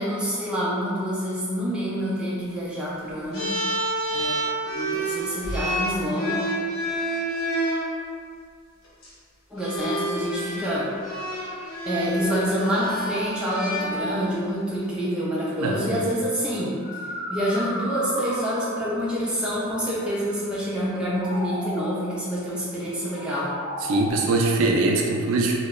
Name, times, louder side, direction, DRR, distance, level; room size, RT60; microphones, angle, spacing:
voice 1, 0.0-3.5 4.1-6.3 9.5-10.9 11.9-16.8 17.3-23.5, equal, 5° right, -8 dB, 0.4 m, -27 dB
sound 1, 3.3-7.8 8.8-9.1 9.6-14.4, right 1 dB, 85° left, 0.7 m, -29 dB
sound 2, 15.7-15.8 16.6-18.9 20.8-22.0 23.0-24.1, equal, 20° left, 1.4 m, -34 dB
voice 2, 23.8-25.5, right 2 dB, 80° right, 0 dB, 0.3 m, -22 dB
2.7 x 2.0 x 2.2 m, 2.1 s
head